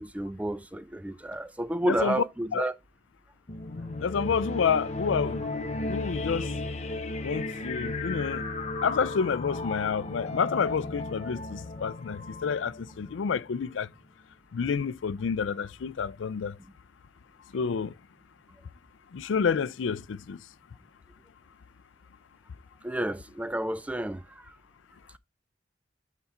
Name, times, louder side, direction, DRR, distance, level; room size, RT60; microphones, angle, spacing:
voice 1, 0.0-2.8 22.8-24.6, right 1 dB, 5° right, 0.4 m, -31 dB
voice 2, 1.9-2.2 2.5-2.7 4.0-5.6 5.9-6.5 7.2-8.4 8.8-13.9 14.5-16.6 17.5-17.9 19.1-20.4, left 6 dB, 90° left, 0.4 m, -29 dB
sound 1, 3.5-13.7, left 2 dB, 35° left, 0.8 m, -35 dB
8.0 x 4.0 x 4.3 m
head